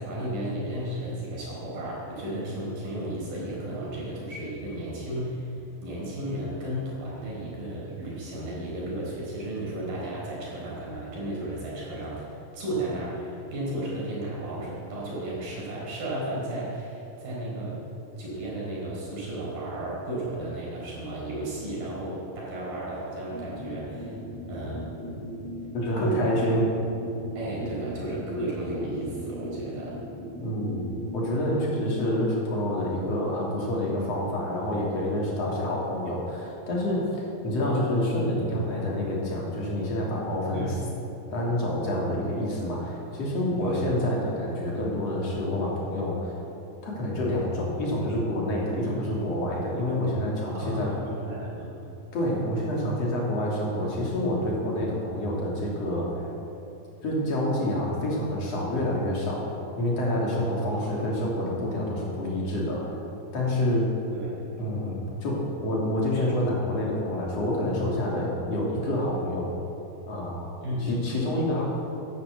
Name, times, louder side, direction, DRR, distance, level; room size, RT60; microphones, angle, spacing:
voice 1, 0.0-5.6 5.8-17.8 18.2-24.2 24.5-24.9 26.0-26.4 27.4-30.0 40.5-40.8 43.6-43.9 48.8-49.0 50.5-51.9 60.7-60.9 64.1-64.3 70.6-70.9, right 1 dB, 75° right, -5 dB, 6.3 m, -33 dB
sound 1, 23.3-32.0, equal, 20° right, 0.9 m, -38 dB
voice 2, 25.7-26.7 30.4-30.8 31.1-40.7 41.3-46.3 46.8-51.0 52.1-56.2 57.0-59.5 59.8-62.9 63.3-63.9 64.6-69.5 70.1-70.5 70.8-71.6, left 1 dB, 45° left, -4 dB, 3.8 m, -27 dB
12.0 x 11.0 x 8.3 m, 2.8 s
omnidirectional pair, 4.1 m